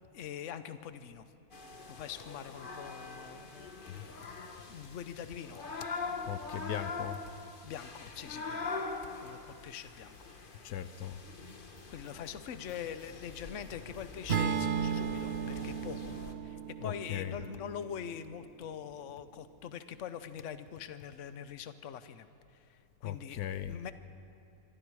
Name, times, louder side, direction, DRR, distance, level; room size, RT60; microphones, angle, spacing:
voice 1, 0.1-1.3 1.9-4.3 4.7-5.6 7.6-8.7 9.2-10.2 10.6-10.8 11.9-16.1 16.4-22.3 22.5-23.4 23.7-23.9, left 8 dB, 60° left, 11 dB, 1.1 m, -44 dB
sound 1, 1.5-16.3, left 3 dB, 35° left, 1.4 m, -43 dB
voice 2, 3.9-4.2 6.2-7.2 10.6-11.2 16.8-17.4 23.0-23.8, left 11 dB, 90° left, 13 dB, 1.3 m, -39 dB
Acoustic guitar / Strum, 14.3-18.5, right 7 dB, 50° right, 0.9 m, -35 dB
25.5 x 24.5 x 4.8 m, 2.7 s
omnidirectional pair, 1.6 m